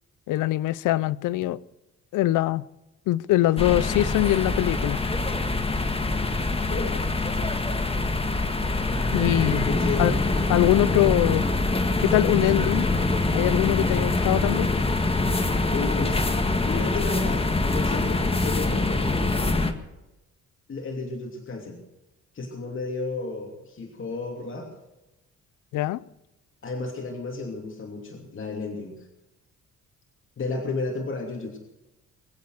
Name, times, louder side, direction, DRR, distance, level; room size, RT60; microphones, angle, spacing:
voice 1, 0.3-1.6 2.1-2.6 3.1-5.0 9.1-9.7 10.0-10.1 10.5-11.5 12.0-12.9 13.3-14.7 25.7-26.0, left 15 dB, 85° left, 0.6 m, -23 dB
sound 1, 1.4-1.5 3.3-3.5 5.4-5.6 7.3-7.7 8.9-9.1 10.5-10.9 12.5-12.7 13.9-14.2 16.0-16.2, right 3 dB, 35° right, 6.6 m, -46 dB
sound 2, 3.6-19.7, left 2 dB, 20° left, 1.6 m, -24 dB
voice 2, 6.7-7.0 9.6-10.2 15.7-16.3 16.6-19.7 20.7-21.8 22.3-24.7 26.6-29.1 30.4-31.6, left 3 dB, 40° left, 2.8 m, -33 dB
22.5 x 8.6 x 6.5 m
cardioid pair, 90°, 30 cm